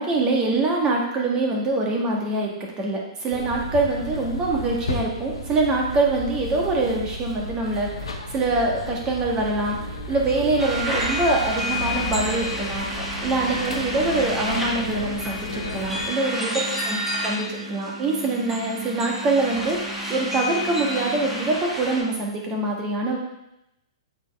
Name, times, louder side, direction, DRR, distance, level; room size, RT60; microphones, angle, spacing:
voice 1, 0.0-12.9 13.2-17.0 17.2-23.2, right 2 dB, 25° right, -1 dB, 1.6 m, -24 dB
sound 1, 3.3-16.1, left 1 dB, 80° left, 0.9 m, -33 dB
sound 2, 10.6-22.0, equal, 10° right, 1.4 m, -30 dB
sound 3, 11.6-21.6, right 1 dB, 10° left, 0.7 m, -39 dB
8.0 x 4.1 x 3.5 m, 0.86 s
hypercardioid pair, 120°, 3 cm